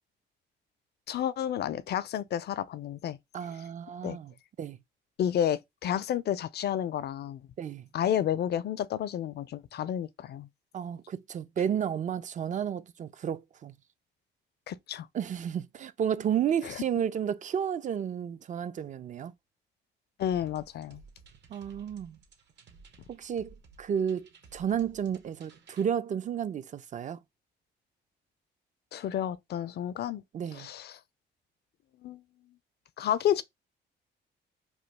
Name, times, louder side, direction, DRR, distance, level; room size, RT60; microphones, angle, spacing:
voice 1, 1.1-3.2 4.0-4.2 5.2-7.4 7.9-10.5 14.7-15.1 16.6-16.7 20.2-21.0 28.9-30.2 30.5-31.0 32.0-32.2 33.0-33.4, left 10 dB, 55° left, 0.4 m, -31 dB
voice 2, 3.3-4.3 4.6-4.8 7.6-7.9 10.7-13.7 15.1-19.3 21.5-22.2 23.1-27.2 30.3-30.7, right 8 dB, 40° right, 0.4 m, -32 dB
sound 1, 20.2-25.8, right 4 dB, 60° right, 0.8 m, -56 dB
3.0 x 2.3 x 3.2 m
cardioid pair, 90°, 20 cm